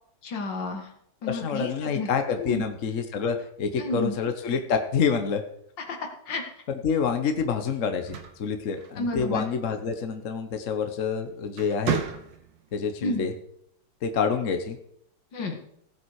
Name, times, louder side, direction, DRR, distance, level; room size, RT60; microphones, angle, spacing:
voice 1, 0.2-0.9 1.2-2.1 2.4-2.6 3.8-4.1 5.9-6.4 9.0-9.5 13.0-13.2 15.3-15.6, left 3 dB, 70° left, 3 dB, 2.4 m, -31 dB
voice 2, 1.2-5.4 6.8-12.0 12.7-13.3 14.0-14.8, left 6 dB, 50° left, 6 dB, 1.2 m, -27 dB
sound 1, 7.9-9.4 10.8-11.1 11.5-12.7, right 8 dB, 70° right, 1.9 m, -33 dB
16.5 x 7.7 x 4.8 m, 0.71 s
omnidirectional pair, 2.1 m